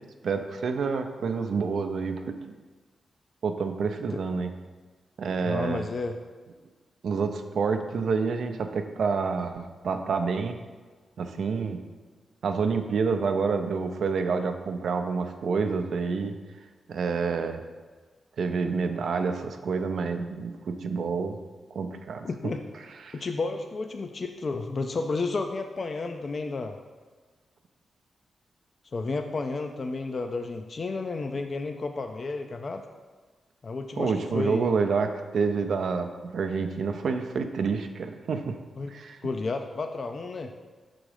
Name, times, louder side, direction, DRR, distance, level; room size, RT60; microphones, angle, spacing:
voice 1, 0.2-2.5 3.4-4.5 5.2-5.9 7.0-10.6 11.2-11.8 12.4-16.3 16.9-17.6 18.4-21.4 21.7-22.3 23.0-23.2 34.0-38.6 38.9-39.2, right 5 dB, 75° right, 6 dB, 0.5 m, -28 dB
voice 2, 5.4-6.2 22.2-22.6 23.1-26.8 28.9-32.8 33.6-34.7 38.8-38.9 39.2-40.5, left 3 dB, 50° left, 6 dB, 0.4 m, -32 dB
6.1 x 3.9 x 4.9 m, 1.4 s
cardioid pair, 55°, 0 cm